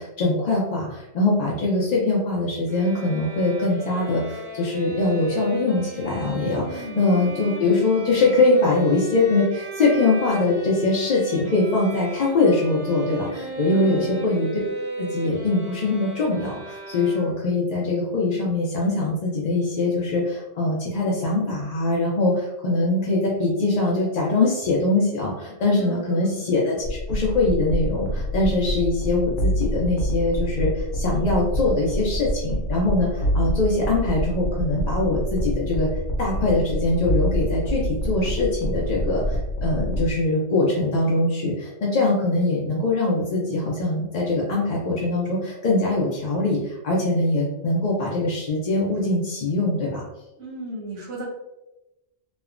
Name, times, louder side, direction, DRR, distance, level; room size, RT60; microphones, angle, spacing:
voice 1, 0.0-14.5 15.0-35.9 36.2-50.0, left 2 dB, 60° left, -4 dB, 0.4 m, -22 dB
sound 1, 2.7-17.6, right 2 dB, 35° right, 0.4 m, -35 dB
voice 2, 6.6-7.1 13.7-14.1 25.7-26.4 50.4-51.3, right 1 dB, 85° right, -3 dB, 1.1 m, -35 dB
sound 2, 26.8-40.1, equal, 75° left, 0.9 m, -26 dB
3.0 x 2.1 x 2.4 m, 0.97 s
omnidirectional pair, 1.2 m